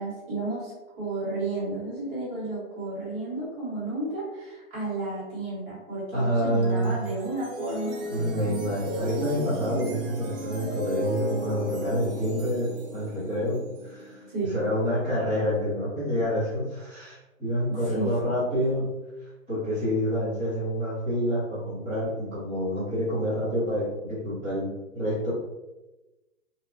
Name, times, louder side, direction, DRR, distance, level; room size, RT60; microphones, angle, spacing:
voice 1, 0.0-8.0 14.3-14.6 17.7-18.6, right 2 dB, 20° right, -8 dB, 0.9 m, -32 dB
voice 2, 6.1-7.0 8.1-14.2 14.5-18.9 19.5-25.3, equal, 10° left, -17 dB, 0.6 m, -28 dB
sound 1, 6.4-15.6, right 1 dB, 45° right, 0.5 m, -35 dB
2.8 x 2.1 x 2.4 m, 1.0 s
hypercardioid pair, 160°, 41 cm